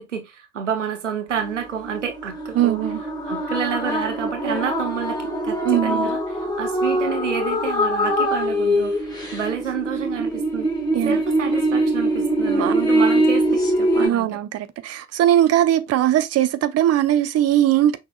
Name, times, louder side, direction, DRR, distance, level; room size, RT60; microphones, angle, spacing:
voice 1, 0.0-10.7 11.0-14.4, right 8 dB, 90° right, 0.6 m, -29 dB
sound 1, 1.3-14.1, right 1 dB, 10° left, 2.0 m, -23 dB
voice 2, 2.6-3.0 5.6-6.1 10.9-11.2 12.6-12.7 14.0-18.0, right 12 dB, 45° right, 0.7 m, -20 dB
6.0 x 2.8 x 2.3 m
figure-of-eight pair, 50°, 35 cm